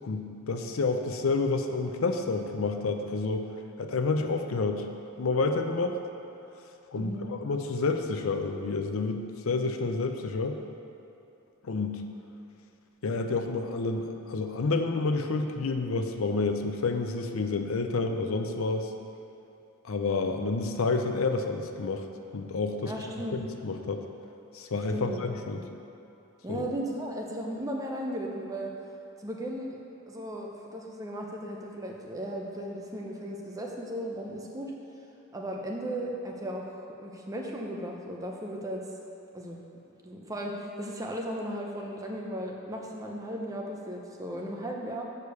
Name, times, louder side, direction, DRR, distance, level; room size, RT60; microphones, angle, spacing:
voice 1, 0.0-3.5 3.8-4.9 5.2-6.0 6.9-10.6 11.6-12.0 13.0-18.9 19.8-22.0 22.3-22.9 23.3-24.0 24.5-25.6 26.5-26.6, left 3 dB, 75° left, 6 dB, 0.5 m, -29 dB
voice 2, 6.9-7.2 22.9-23.4 24.9-25.7 26.4-28.7 29.2-29.8 30.1-34.7 35.3-38.9 39.3-39.6 40.0-45.0, right 1 dB, 15° right, 0 dB, 0.7 m, -36 dB
6.6 x 4.8 x 6.8 m, 2.8 s
head